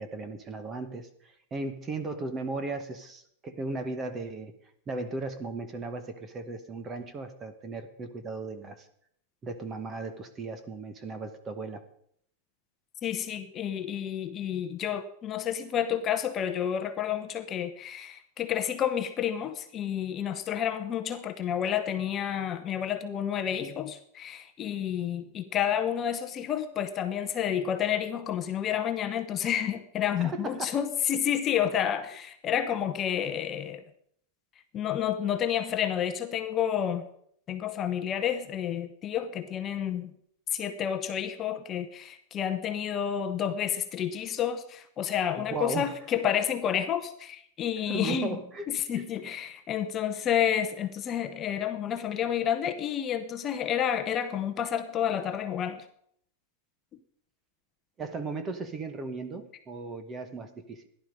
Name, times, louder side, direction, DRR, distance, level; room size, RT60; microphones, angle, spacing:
voice 1, 0.0-4.6 4.9-8.9 9.4-11.8 30.2-30.7 45.4-45.9 47.9-48.6 49.0-49.1 58.0-60.9, right 3 dB, 15° right, 10 dB, 1.0 m, -36 dB
voice 2, 13.0-33.8 34.7-37.0 37.5-40.1 40.5-48.4 48.7-55.8, left 9 dB, 20° left, 7 dB, 0.9 m, -30 dB
15.0 x 11.0 x 5.2 m, 0.66 s
supercardioid pair, 175°, 0 cm